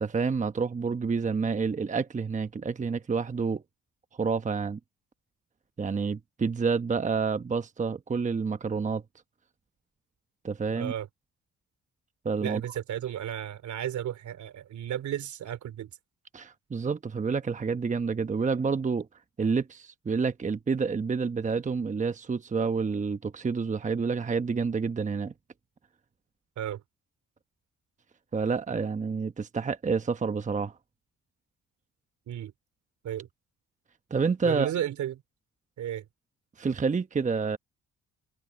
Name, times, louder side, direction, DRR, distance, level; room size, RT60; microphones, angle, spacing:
voice 1, 0.0-3.6 4.2-4.8 5.8-9.0 10.4-10.9 12.2-12.6 16.3-19.1 19.4-25.3 28.3-30.7 34.1-34.7 36.6-37.6, right 5 dB, 25° right, 0.9 m, -28 dB
voice 2, 10.7-11.1 12.4-15.9 26.6-26.8 32.3-32.5 33.0-33.3 34.4-35.2 35.8-36.0, right 11 dB, 70° right, 3.2 m, -33 dB
cardioid pair, 90°, 30 cm